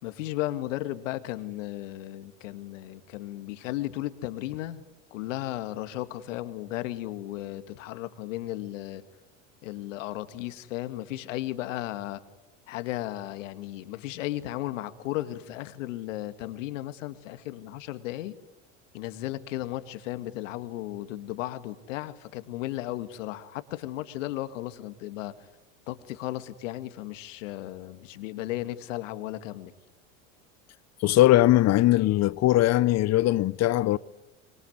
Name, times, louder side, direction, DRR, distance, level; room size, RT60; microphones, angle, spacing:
voice 1, 0.0-4.8 5.1-9.0 9.6-12.2 12.7-18.4 18.9-25.3 25.9-29.7, left 15 dB, 75° left, 2.0 m, -35 dB
voice 2, 31.0-34.0, left 15 dB, 45° left, 0.9 m, -20 dB
25.5 x 22.5 x 9.5 m
hypercardioid pair, 90°, 38 cm